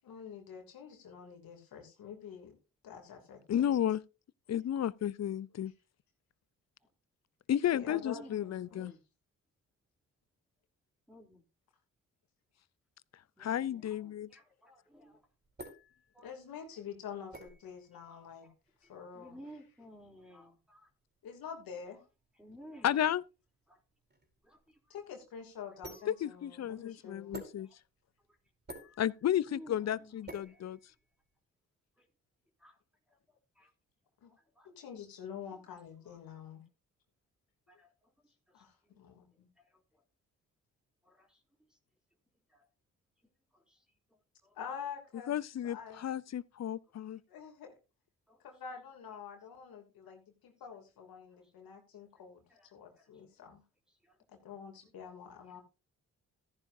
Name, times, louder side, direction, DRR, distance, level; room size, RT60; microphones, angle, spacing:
voice 1, 0.0-2.6 2.8-3.8 7.7-8.2 8.7-8.8 16.2-18.5 18.8-19.4 21.2-22.0 24.9-27.4 34.2-34.3 34.6-36.6 38.5-39.5 44.5-45.3 45.6-46.0 47.3-47.8 48.4-52.4 52.7-53.6 54.3-55.6, left 7 dB, 80° left, 2.9 m, -47 dB
voice 2, 3.5-4.0 4.5-5.7 7.5-8.9 13.4-14.3 22.8-23.2 26.1-27.7 29.0-30.8 45.3-47.2, left 10 dB, 50° left, 0.6 m, -32 dB
voice 3, 7.6-9.0 11.1-11.4 13.4-15.2 16.1-16.3 18.1-18.5 18.8-20.9 22.3-23.2 23.7-23.8 24.4-25.0 25.7-25.8 27.6-27.8 28.3-28.4 28.8-29.0 29.5-30.2 30.4-30.6 31.9-32.1 32.6-32.8 33.1-33.7 34.3-34.7 35.5-35.8 36.0-36.2 37.7-38.6 38.9-39.0 39.6-40.0 41.0-41.4 43.5-44.6 46.0-46.1 46.7-46.8 48.3-48.4 50.0-50.1 51.3-51.5 52.5-53.2 53.9-54.2 54.8-54.9 55.5-55.6, equal, ahead, 3.3 m, -56 dB
sound 1, 15.0-31.4, right 1 dB, 30° right, 4.5 m, -54 dB
14.0 x 10.0 x 2.7 m
supercardioid pair, 55°, 35 cm